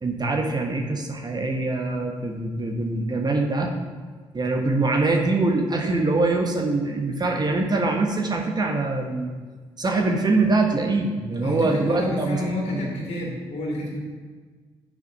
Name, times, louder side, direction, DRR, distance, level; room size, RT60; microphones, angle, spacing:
voice 1, 0.0-3.7 4.3-9.3 9.8-12.4 12.7-13.1, right 3 dB, 30° right, 2 dB, 1.2 m, -23 dB
voice 2, 11.4-14.0, left 1 dB, 55° left, -4 dB, 2.2 m, -30 dB
6.7 x 4.9 x 6.0 m, 1.5 s
hypercardioid pair, 45°, 13 cm